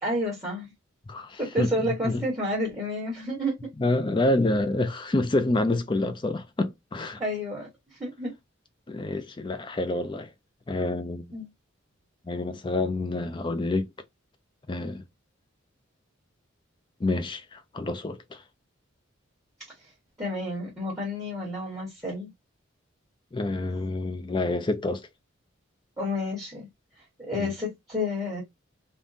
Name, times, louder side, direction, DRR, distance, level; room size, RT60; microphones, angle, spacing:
voice 1, 0.0-0.7 1.4-3.5 7.2-8.3 11.3-11.5 20.2-22.3 26.0-26.7 27.2-28.4, left 1 dB, 15° right, 1.2 m, -30 dB
voice 2, 1.1-2.2 3.8-7.2 8.9-10.3 10.7-11.3 12.3-13.9 14.7-15.0 17.0-18.4 23.3-25.1 27.3-27.5, left 2 dB, 25° left, 0.4 m, -28 dB
3.5 x 2.2 x 2.6 m
head